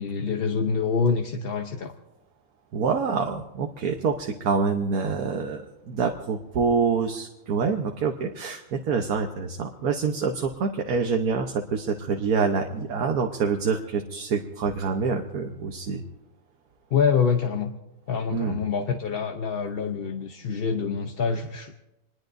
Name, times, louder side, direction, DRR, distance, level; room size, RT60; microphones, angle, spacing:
voice 1, 0.0-1.9 16.9-17.7 18.1-21.8, left 6 dB, 45° left, 4 dB, 0.9 m, -26 dB
voice 2, 2.7-16.0 18.3-18.6, right 5 dB, 85° right, 3 dB, 1.5 m, -26 dB
26.0 x 21.0 x 2.6 m, 0.95 s
omnidirectional pair, 1.5 m